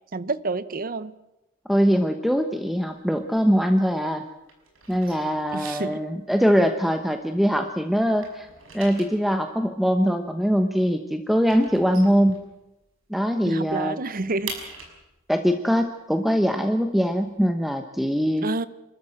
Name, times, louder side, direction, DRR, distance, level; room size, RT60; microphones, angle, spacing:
voice 1, 0.1-1.1 5.5-6.0 13.4-14.5 18.4-18.7, right 3 dB, 45° right, 16 dB, 0.9 m, -28 dB
voice 2, 1.7-4.2 4.9-8.5 8.7-12.4 13.1-14.0 15.3-18.5, equal, ahead, 6 dB, 1.0 m, -22 dB
sound 1, 2.7-4.2 4.4-7.7 7.9-13.0 13.3-13.4 13.7-17.4, right 4 dB, 85° right, 5.8 m, -43 dB
28.0 x 13.5 x 7.9 m, 0.95 s
head